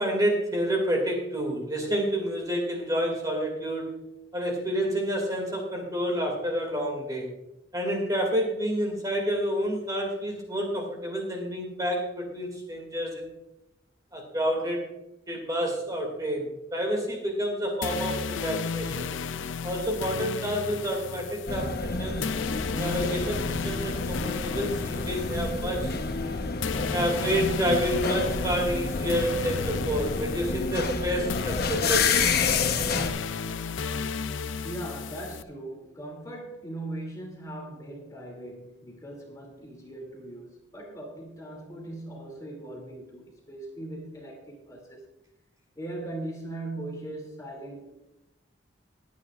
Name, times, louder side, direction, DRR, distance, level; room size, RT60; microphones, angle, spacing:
voice 1, 0.0-4.0 4.3-7.3 7.7-13.3 14.1-14.9 15.3-19.1 19.6-22.2 22.8-25.9 26.9-32.3, equal, 20° right, 1 dB, 2.3 m, -29 dB
sound 1, 17.8-35.4, left 6 dB, 85° left, 0.5 m, -34 dB
sound 2, 21.5-33.1, left 4 dB, 55° left, 1.0 m, -29 dB
voice 2, 34.6-45.0 45.8-47.9, right 1 dB, 20° left, 0 dB, 2.6 m, -39 dB
21.0 x 9.4 x 2.5 m, 0.86 s
head